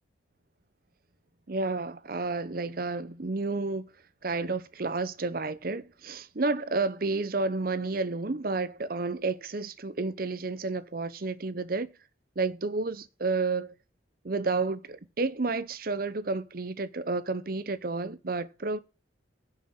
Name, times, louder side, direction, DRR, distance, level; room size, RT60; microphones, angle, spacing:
voice 1, 1.5-3.9 4.2-11.9 12.4-13.7 14.2-18.8, right 3 dB, 50° right, 0.7 m, -31 dB
10.5 x 6.0 x 7.8 m
head